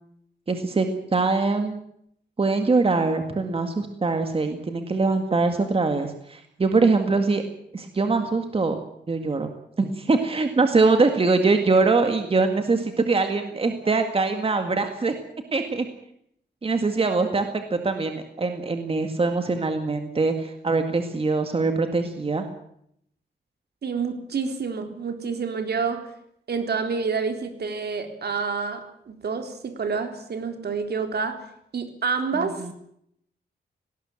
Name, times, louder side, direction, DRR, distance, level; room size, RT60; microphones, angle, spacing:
voice 1, 0.5-1.8 2.4-7.4 7.7-8.8 9.1-9.5 9.8-15.1 15.5-15.9 16.6-22.4 32.4-32.7, right 3 dB, 30° right, 6 dB, 2.0 m, -23 dB
voice 2, 23.8-26.0 26.5-31.4 31.7-32.7, right 5 dB, 65° right, 6 dB, 3.8 m, -28 dB
19.0 x 18.5 x 9.0 m, 0.72 s
wide cardioid pair, 135°, 18 cm